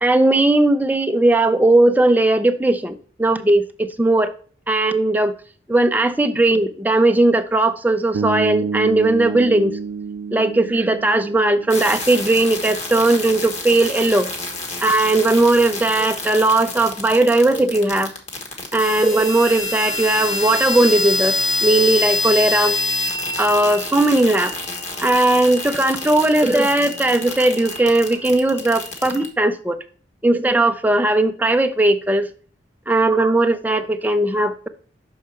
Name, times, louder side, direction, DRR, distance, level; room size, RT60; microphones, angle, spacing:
voice 1, 0.0-4.3 4.7-5.3 5.7-9.8 10.3-14.3 14.8-18.1 18.7-22.7 23.4-24.5 25.0-29.8 30.2-32.3 32.9-34.7, right 2 dB, 10° right, 0.4 m, -18 dB
Bass guitar, 8.1-12.2, right 5 dB, 75° right, 0.3 m, -28 dB
sound 1, 11.7-29.3, left 2 dB, 35° left, 1.3 m, -27 dB
6.3 x 4.7 x 4.3 m
head